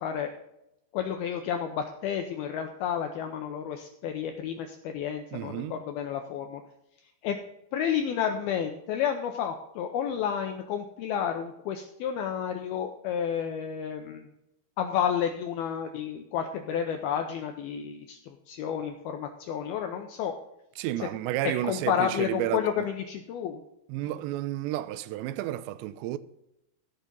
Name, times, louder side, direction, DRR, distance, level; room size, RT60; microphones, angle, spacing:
voice 1, 0.0-0.3 0.9-6.6 7.2-7.4 7.7-14.2 14.8-20.3 21.6-23.6, left 8 dB, 80° left, 2.2 m, -31 dB
voice 2, 5.3-5.8 20.8-22.6 23.9-26.2, right 14 dB, 80° right, 2.7 m, -31 dB
15.0 x 6.1 x 5.3 m
omnidirectional pair, 5.3 m